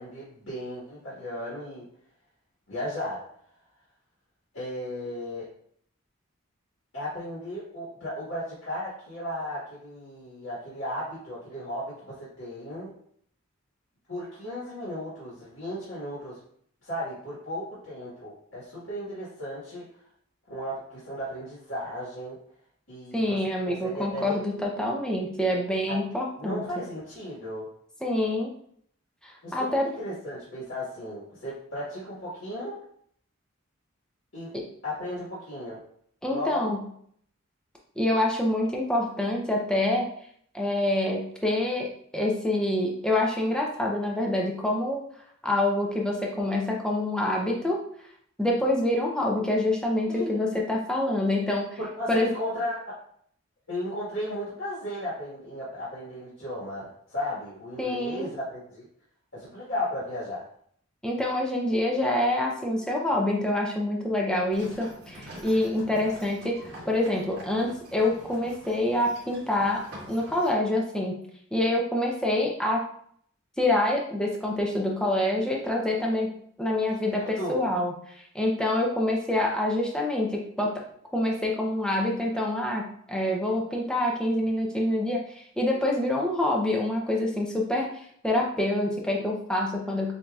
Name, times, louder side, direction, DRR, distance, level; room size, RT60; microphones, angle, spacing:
voice 1, 0.0-1.8 2.7-3.2 4.5-5.4 6.9-12.9 14.1-16.4 16.8-19.8 20.5-22.3 22.9-23.4 23.6-24.4 25.9-26.0 26.4-27.6 29.4-32.7 34.3-34.5 34.8-35.8 36.3-36.7 50.1-50.6 51.8-52.7 53.7-58.9 59.3-60.4 76.9-77.7, left 1 dB, 65° left, -8 dB, 1.5 m, -35 dB
voice 2, 23.1-26.6 28.0-28.5 29.2-29.9 34.5-34.6 36.2-36.8 38.0-40.1 40.5-45.0 45.4-47.8 48.4-51.7 52.1-52.3 57.8-58.3 61.0-66.6 66.8-69.8 70.1-71.2 71.5-72.8 73.6-76.3 76.6-80.8 81.1-90.1, left 1 dB, 5° left, -1 dB, 0.5 m, -26 dB
sound 1, 64.5-70.5, equal, 50° right, 1.6 m, -45 dB
7.1 x 2.8 x 2.3 m, 0.64 s
head